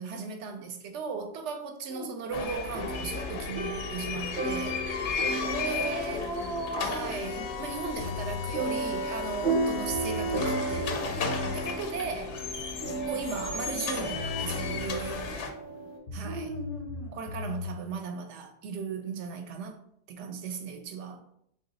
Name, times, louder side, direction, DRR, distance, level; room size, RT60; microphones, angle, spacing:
voice 1, 0.0-4.8 5.6-6.3 6.8-11.0 11.5-12.4 13.0-15.4 16.1-16.5 17.1-19.8 20.1-21.2, right 5 dB, 80° right, 0.9 m, -37 dB
sound 1, 2.3-15.5, left 5 dB, 85° left, 0.9 m, -35 dB
sound 2, 2.7-16.0, right 2 dB, 45° right, 0.8 m, -35 dB
voice 2, 5.4-7.1 13.1-13.4 16.2-17.2, right 1 dB, 20° right, 0.5 m, -36 dB
sound 3, 8.0-8.6 9.6-9.7 9.9-11.6 13.8-13.9 14.1-15.3 16.1-17.8, left 4 dB, 60° left, 0.6 m, -38 dB
3.0 x 2.3 x 3.9 m
omnidirectional pair, 1.2 m